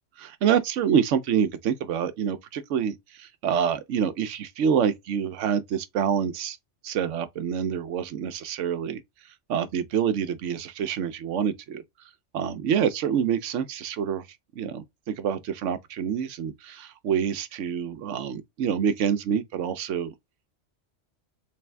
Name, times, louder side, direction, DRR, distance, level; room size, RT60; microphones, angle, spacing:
voice 1, 0.2-2.9 3.4-6.6 6.8-9.0 9.5-11.8 12.3-14.2 14.6-14.8 15.2-20.1, right 8 dB, 80° right, 1.0 m, -26 dB
3.5 x 3.2 x 3.3 m
omnidirectional pair, 1.2 m